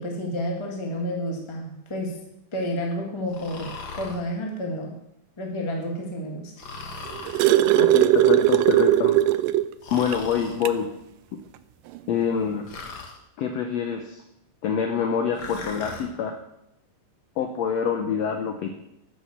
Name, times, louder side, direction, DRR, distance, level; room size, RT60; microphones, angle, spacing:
voice 1, 0.0-2.2 2.5-3.7 4.0-5.0 5.4-6.5, equal, 15° left, 0 dB, 0.9 m, -30 dB
Breathing, 3.3-4.2 6.6-7.5 9.8-10.6 12.7-13.2 15.3-16.1, left 3 dB, 50° left, 1.2 m, -38 dB
sound 1, 6.8-9.7 10.1-10.2 10.6-10.8 11.9-12.0, right 13 dB, 80° right, 2.0 m, -19 dB
voice 2, 7.7-9.2 9.9-10.9 11.3-11.4 12.1-12.7 13.4-14.2 14.6-16.4 17.4-18.7, left 7 dB, 75° left, 5 dB, 1.5 m, -26 dB
11.0 x 6.4 x 7.1 m, 0.83 s
omnidirectional pair, 3.9 m